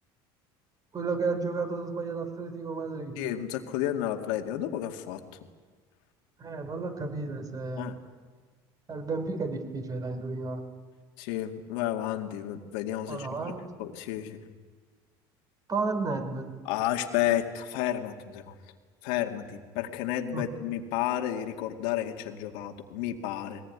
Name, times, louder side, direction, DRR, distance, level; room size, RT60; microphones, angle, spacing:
voice 1, 0.9-3.3 6.4-7.9 8.9-10.6 13.1-13.6 15.7-16.6 20.3-20.5, right 4 dB, 30° right, 8 dB, 3.7 m, -32 dB
voice 2, 3.2-5.2 7.8-7.9 11.2-13.3 13.8-14.4 16.7-18.5 19.0-23.6, left 12 dB, 80° left, 4 dB, 2.2 m, -31 dB
21.5 x 19.0 x 9.6 m, 1.5 s
supercardioid pair, 95°, 12 cm